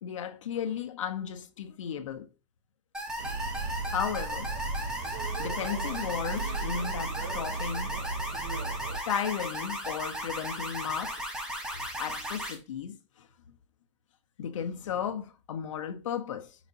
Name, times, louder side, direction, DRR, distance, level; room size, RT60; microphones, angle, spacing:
voice 1, 0.0-2.3 3.9-4.5 5.4-8.0 9.1-11.2 11.7-13.3 14.4-16.6, left 8 dB, 75° left, 1.1 m, -34 dB
sound 1, 2.9-12.5, equal, 5° right, 1.1 m, -36 dB
sound 2, 3.2-9.0, right 3 dB, 35° right, 0.9 m, -36 dB
10.5 x 5.1 x 2.8 m
supercardioid pair, 180°, 16 cm